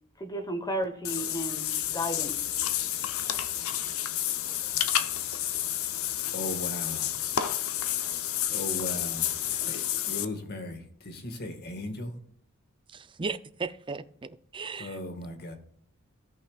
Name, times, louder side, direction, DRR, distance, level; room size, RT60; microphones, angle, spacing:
voice 1, 0.2-2.4, equal, 20° left, 1.2 m, -33 dB
Water / Bathtub (filling or washing), 1.0-10.2, left 11 dB, 80° left, 0.7 m, -30 dB
voice 2, 6.3-7.1 8.5-12.2 14.8-15.5, left 1 dB, 50° left, 1.7 m, -37 dB
voice 3, 12.9-15.0, right 4 dB, 25° right, 0.5 m, -36 dB
17.0 x 5.6 x 2.4 m
head